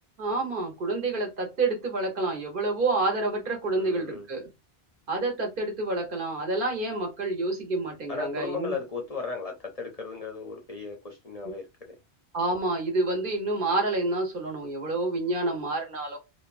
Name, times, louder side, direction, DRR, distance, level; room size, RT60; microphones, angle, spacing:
voice 1, 0.2-4.5 5.1-8.8 12.3-16.2, right 2 dB, 55° right, 1.2 m, -28 dB
voice 2, 3.8-4.3 8.1-11.9, left 4 dB, 45° left, 0.6 m, -36 dB
2.8 x 2.2 x 2.4 m
omnidirectional pair, 1.1 m